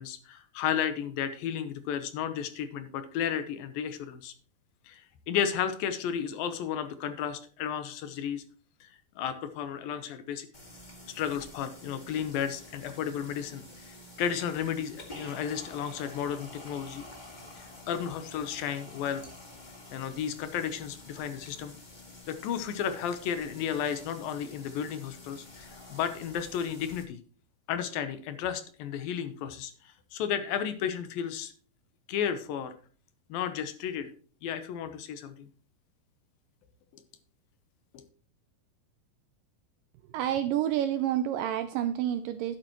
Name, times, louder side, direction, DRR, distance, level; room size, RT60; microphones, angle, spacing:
voice 1, 0.0-4.3 4.9-5.0 5.3-8.4 8.8-8.9 9.2-10.5 11.1-17.1 17.6-19.2 19.9-21.7 22.3-27.2 27.7-29.7 30.1-31.5 32.1-32.7 33.3-34.1 34.4-35.5 37.9-38.0, left 8 dB, 75° left, 10 dB, 2.5 m, -33 dB
sound 1, 10.5-27.0, left 2 dB, 35° left, 0.7 m, -49 dB
voice 2, 40.1-42.6, right 11 dB, 80° right, 9 dB, 2.0 m, -29 dB
12.0 x 9.1 x 3.0 m, 0.43 s
omnidirectional pair, 4.4 m